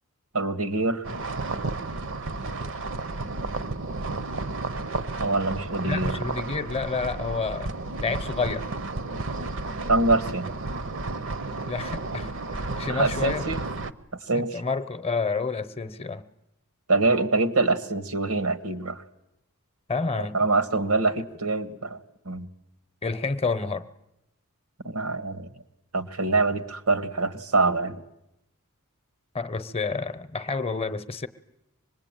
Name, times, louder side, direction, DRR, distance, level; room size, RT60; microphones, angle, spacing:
voice 1, 0.3-1.0 5.2-6.2 9.9-10.5 12.9-13.6 14.3-14.6 16.9-19.0 20.3-22.0 22.2-22.5 24.8-25.5 25.9-28.0, right 3 dB, 85° right, 11 dB, 1.7 m, -24 dB
sound 1, 1.0-13.9, right 3 dB, 55° right, 0.9 m, -32 dB
voice 2, 5.8-7.7 8.0-8.7 11.6-12.3 12.8-13.4 14.3-16.2 19.9-20.4 23.0-23.8 29.3-31.3, left 4 dB, 25° left, 13 dB, 0.8 m, -29 dB
25.5 x 20.5 x 9.0 m, 0.88 s
head